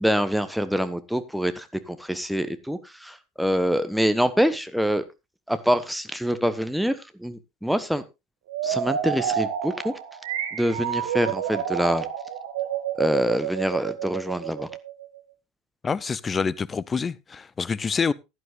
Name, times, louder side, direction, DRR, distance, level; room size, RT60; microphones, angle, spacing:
voice 1, 0.0-5.0 5.5-8.0 8.6-9.9 10.5-12.1 13.0-14.7, equal, ahead, 1.1 m, -25 dB
sound 1, 8.5-15.2, right 9 dB, 65° right, 1.9 m, -29 dB
voice 2, 15.8-18.1, left 5 dB, 25° left, 0.6 m, -26 dB
16.0 x 11.0 x 2.5 m
figure-of-eight pair, 70°, 0 cm